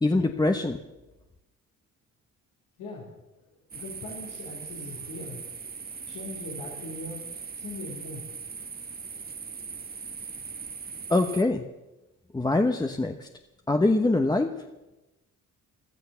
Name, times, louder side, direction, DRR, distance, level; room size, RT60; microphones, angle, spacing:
voice 1, 0.0-0.8 11.1-11.6 12.3-13.3 13.7-14.5, left 2 dB, 15° left, 5 dB, 0.9 m, -23 dB
voice 2, 3.7-5.4 6.1-7.2 7.6-8.2, left 2 dB, 85° left, -3 dB, 3.7 m, -40 dB
sound 1, 3.7-11.4, right 5 dB, 30° right, 1.2 m, -40 dB
14.5 x 13.0 x 6.9 m, 1.0 s
cardioid pair, 90°, 30 cm